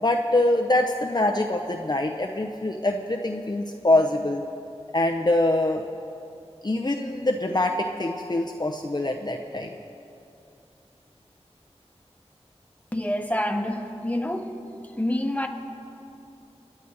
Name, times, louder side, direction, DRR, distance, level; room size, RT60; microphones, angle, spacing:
voice 1, 0.0-4.4 4.9-5.8 6.6-9.8, left 1 dB, 40° left, 3 dB, 0.7 m, -24 dB
voice 2, 12.9-14.6 15.0-15.5, left 1 dB, 15° left, 4 dB, 1.3 m, -27 dB
29.5 x 10.0 x 4.1 m, 2.7 s
wide cardioid pair, 50°, 11 cm